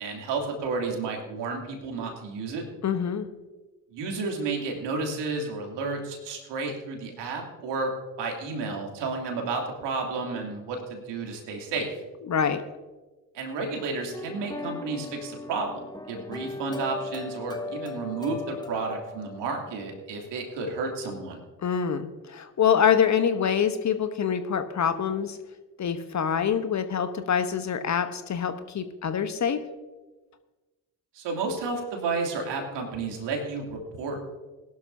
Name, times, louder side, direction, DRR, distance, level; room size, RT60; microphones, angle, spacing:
voice 1, 0.0-2.7 3.9-7.9 8.2-11.9 13.3-15.8 16.1-21.4 31.1-34.2, right 4 dB, 60° right, 1 dB, 2.9 m, -31 dB
voice 2, 2.8-3.3 12.3-12.6 21.6-25.4 25.8-29.6, left 7 dB, 35° left, 10 dB, 1.1 m, -25 dB
sound 1, 14.1-20.1, left 3 dB, 10° left, 1.1 m, -38 dB
20.0 x 12.0 x 2.7 m, 1.2 s
figure-of-eight pair, 50°, 47 cm